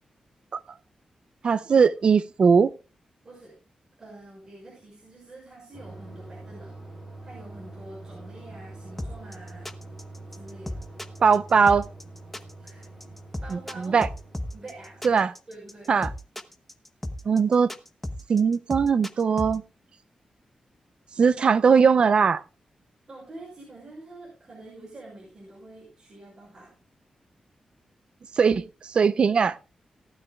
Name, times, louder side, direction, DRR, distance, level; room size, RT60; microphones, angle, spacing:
voice 1, 1.4-2.7 11.2-11.9 13.5-14.1 15.0-15.3 15.9-16.1 17.3-17.7 18.3-19.6 21.2-22.4 28.4-29.6, right 6 dB, 50° right, 0.5 m, -20 dB
voice 2, 3.2-3.6 4.0-6.7 7.2-9.7 10.3-10.8 12.6-12.9 13.4-14.0 14.5-16.0 23.1-26.8, right 2 dB, 30° right, 5.9 m, -46 dB
sound 1, 5.7-15.2, right 2 dB, 10° right, 6.1 m, -45 dB
sound 2, 9.0-19.6, left 1 dB, 10° left, 1.1 m, -34 dB
18.5 x 12.5 x 2.3 m
wide cardioid pair, 160°, 2 cm